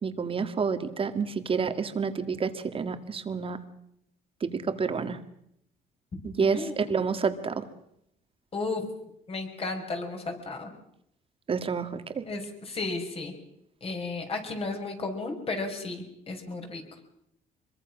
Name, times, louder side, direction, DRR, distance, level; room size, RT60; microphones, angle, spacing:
voice 1, 0.0-3.6 4.4-5.2 6.2-7.7 11.5-12.2, right 5 dB, 35° right, 9 dB, 2.0 m, -29 dB
voice 2, 6.5-6.8 8.5-8.9 9.3-10.7 12.3-13.3 13.8-16.8, left 3 dB, 35° left, 4 dB, 5.5 m, -34 dB
25.0 x 22.5 x 6.2 m, 0.77 s
cardioid pair, 110°, 17 cm